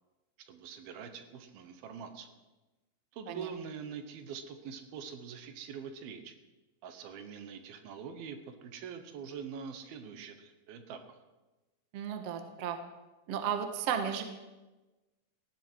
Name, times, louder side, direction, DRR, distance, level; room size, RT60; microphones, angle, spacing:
voice 1, 0.5-2.4 3.1-6.3 6.8-11.2, right 6 dB, 80° right, 8 dB, 3.1 m, -44 dB
voice 2, 11.9-12.8 13.3-14.2, right 8 dB, 55° right, 6 dB, 1.9 m, -34 dB
18.5 x 14.0 x 4.6 m, 1.1 s
omnidirectional pair, 4.3 m